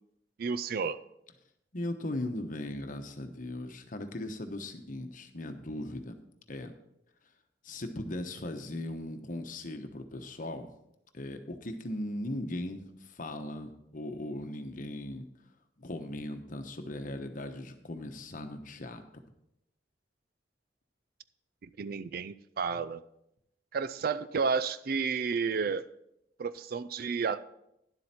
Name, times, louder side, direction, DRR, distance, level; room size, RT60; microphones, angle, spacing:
voice 1, 0.4-1.0 21.6-23.0 23.7-25.8 26.4-27.4, right 5 dB, 55° right, 15 dB, 0.4 m, -31 dB
voice 2, 1.7-6.2 6.5-6.7 7.6-10.7 11.1-15.3 15.8-19.2, left 1 dB, 50° left, 7 dB, 1.0 m, -38 dB
11.0 x 7.8 x 4.3 m, 0.79 s
head